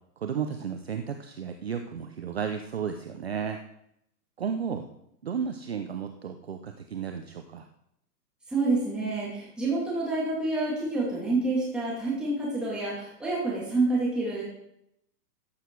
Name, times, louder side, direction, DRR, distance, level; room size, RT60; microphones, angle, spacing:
voice 1, 0.2-3.6 4.4-4.8 5.2-7.7, right 7 dB, 40° right, 6 dB, 0.7 m, -33 dB
voice 2, 8.5-14.4, right 2 dB, ahead, -7 dB, 2.4 m, -28 dB
14.5 x 10.0 x 4.7 m, 0.78 s
hypercardioid pair, 180°, 49 cm